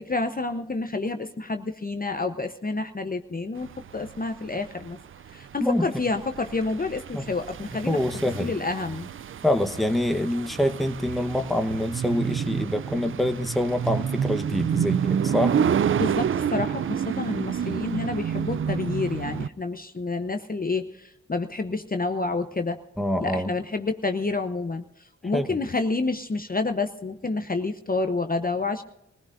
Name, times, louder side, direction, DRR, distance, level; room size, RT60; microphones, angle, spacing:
voice 1, 0.0-5.0 5.3-8.0 8.4-9.1 16.0-22.8 23.2-24.8 25.2-28.8, left 3 dB, 25° left, 7 dB, 0.8 m, -29 dB
sound 1, 3.6-19.5, right 8 dB, 40° right, 0.4 m, -29 dB
voice 2, 7.9-8.5 9.4-15.6 23.0-23.5 25.3-25.6, left 1 dB, ahead, 6 dB, 1.0 m, -25 dB
22.5 x 16.5 x 2.6 m, 0.87 s
cardioid pair, 55°, 32 cm